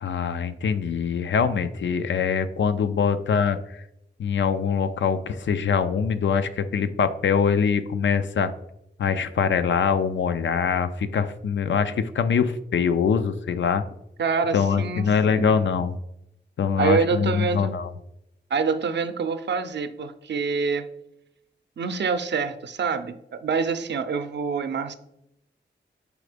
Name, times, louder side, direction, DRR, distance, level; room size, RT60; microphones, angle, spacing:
voice 1, 0.0-3.8 4.2-8.5 9.0-13.8 14.5-16.0 16.6-17.9, left 6 dB, 85° left, 11 dB, 0.4 m, -23 dB
voice 2, 14.2-15.7 16.8-17.7 18.5-20.9 21.8-24.9, right 5 dB, 70° right, 10 dB, 0.5 m, -26 dB
4.9 x 4.2 x 5.0 m, 0.84 s
wide cardioid pair, 110°, 19 cm